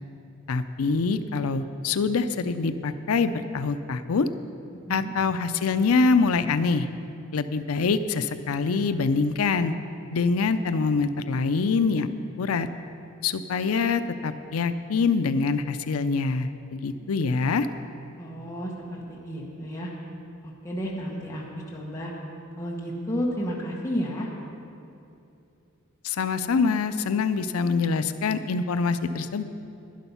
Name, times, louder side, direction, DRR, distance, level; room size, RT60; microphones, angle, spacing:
voice 1, 0.5-4.3 4.9-6.9 7.3-9.7 10.1-12.1 12.4-12.7 13.2-17.7 26.0-29.4, left 4 dB, 85° left, 11 dB, 0.5 m, -25 dB
voice 2, 18.2-19.9 20.4-22.1 22.6-24.3, equal, 15° left, -4 dB, 1.3 m, -32 dB
11.5 x 11.0 x 5.6 m, 2.7 s
head